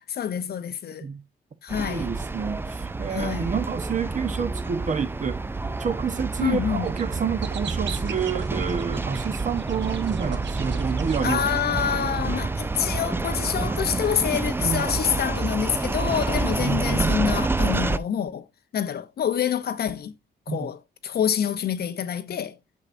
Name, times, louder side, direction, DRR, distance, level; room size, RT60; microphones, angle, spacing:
voice 1, 0.1-1.1 1.6-2.1 3.1-3.5 6.4-6.9 11.2-18.5 18.7-20.1 20.5-22.6, left 8 dB, 55° left, 0.7 m, -27 dB
sound 1, 1.7-18.0, right 3 dB, 10° right, 0.4 m, -28 dB
voice 2, 1.9-5.4 5.8-11.4 11.9-12.3 14.6-14.9 16.6-17.3 20.5-20.7, right 6 dB, 40° right, 0.9 m, -29 dB
sound 2, 6.8-7.0 7.4-11.6, right 9 dB, 70° right, 0.8 m, -39 dB
8.3 x 6.3 x 2.5 m
cardioid pair, 100°, 19 cm